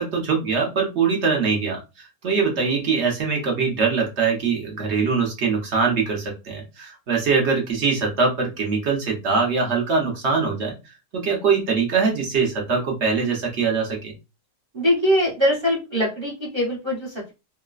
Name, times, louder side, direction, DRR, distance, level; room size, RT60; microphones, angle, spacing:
voice 1, 0.0-10.7 11.1-14.1, right 5 dB, 55° right, 1 dB, 0.8 m, -22 dB
voice 2, 14.7-17.3, equal, 25° right, -3 dB, 0.6 m, -22 dB
3.8 x 2.1 x 2.3 m, 0.27 s
omnidirectional pair, 1.9 m